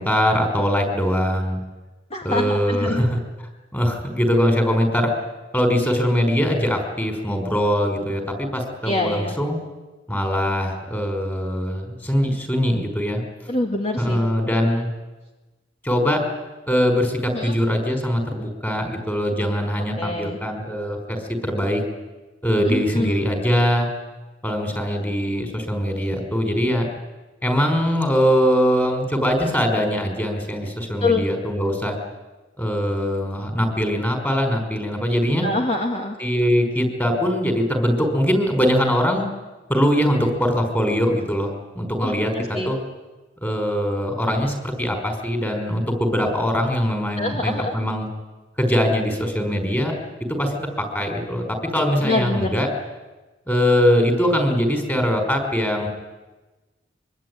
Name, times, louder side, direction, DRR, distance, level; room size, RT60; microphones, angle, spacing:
voice 1, 0.0-1.6 2.2-3.2 3.7-5.1 5.5-9.6 10.1-13.2 14.0-14.9 15.8-16.2 16.7-21.8 22.4-23.9 24.4-26.9 27.4-32.0 32.6-35.5 36.2-39.3 39.7-42.8 43.4-48.1 48.6-49.9 50.3-52.7 53.5-55.9, equal, 10° left, 4 dB, 5.0 m, -22 dB
voice 2, 2.1-3.1 8.8-9.3 13.5-14.2 17.3-17.6 20.0-20.4 22.6-23.2 31.0-31.2 35.4-36.2 42.0-42.7 47.2-47.7 52.0-52.6, left 2 dB, 35° left, 2 dB, 2.3 m, -25 dB
24.5 x 23.5 x 9.7 m, 1.2 s
head